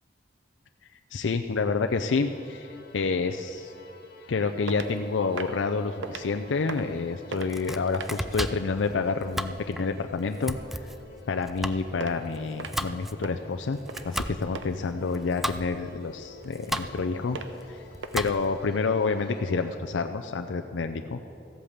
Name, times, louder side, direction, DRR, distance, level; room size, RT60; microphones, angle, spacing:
voice 1, 1.1-2.7 2.9-3.7 4.3-10.6 11.3-13.8 14.0-17.4 17.7-17.8 18.1-21.2, left 4 dB, 75° left, 6 dB, 0.5 m, -28 dB
sound 1, 1.9-19.8, left 3 dB, 55° left, 1.9 m, -51 dB
sound 2, 4.7-5.0 5.3-5.6 6.0-6.3 6.6-7.0 7.3-7.5 7.9-8.2 12.0-12.1 12.6-12.9 13.2-13.4 13.9-14.2 14.5-14.7 16.7-17.0 17.3-17.6 18.0-18.1, right 4 dB, 80° right, 0.8 m, -37 dB
Domestic sounds home sounds, 7.3-18.7, equal, ahead, 0.3 m, -36 dB
14.5 x 8.4 x 7.2 m, 2.7 s
head